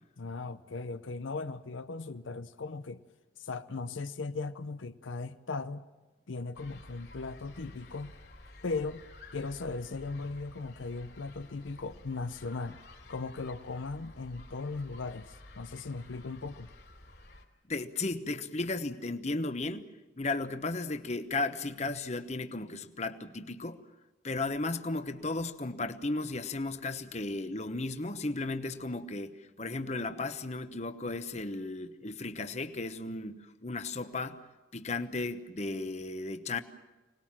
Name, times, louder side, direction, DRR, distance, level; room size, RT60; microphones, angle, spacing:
voice 1, 0.2-3.0 3.4-5.8 6.3-8.1 8.6-9.0 9.3-12.8 13.1-16.7, left 3 dB, 85° left, 0.7 m, -38 dB
sound 1, 6.5-17.4, left 2 dB, 55° left, 2.8 m, -52 dB
voice 2, 17.7-19.9 20.2-23.8 24.2-34.4 34.7-36.6, left 2 dB, 35° left, 1.0 m, -35 dB
25.0 x 19.5 x 7.5 m
head